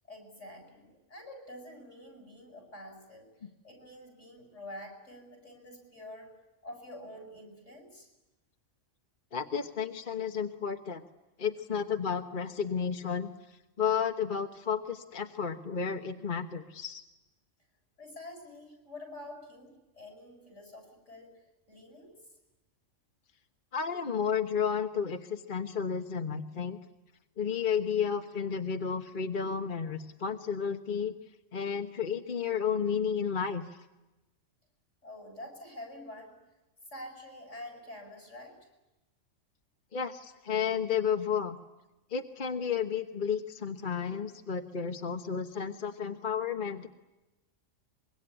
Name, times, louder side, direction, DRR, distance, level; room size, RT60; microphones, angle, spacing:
voice 1, 0.1-6.3 6.6-8.1 18.0-22.1 35.0-36.3 36.9-38.6, left 1 dB, 80° left, 4 dB, 8.0 m, -47 dB
voice 2, 9.3-11.0 11.4-13.3 13.8-17.0 23.7-26.8 27.4-31.1 31.5-33.6 39.9-41.6 42.1-46.9, left 7 dB, 45° left, 6 dB, 1.3 m, -32 dB
25.0 x 23.0 x 10.0 m, 1.0 s
omnidirectional pair, 1.2 m